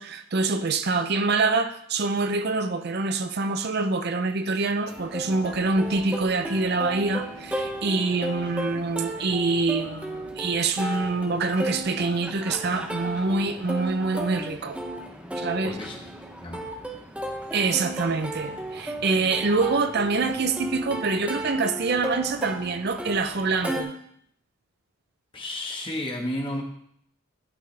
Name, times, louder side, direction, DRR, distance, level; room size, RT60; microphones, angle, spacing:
voice 1, 0.0-14.8 15.4-15.8 17.5-23.9, right 3 dB, 50° right, 9 dB, 0.6 m, -25 dB
Plucked string instrument, 4.9-23.8, right 1 dB, 5° right, 0.7 m, -34 dB
voice 2, 15.6-16.0 16.4-16.6 25.3-26.6, left 1 dB, 25° left, 0 dB, 1.3 m, -32 dB
11.5 x 5.7 x 3.3 m, 0.67 s
head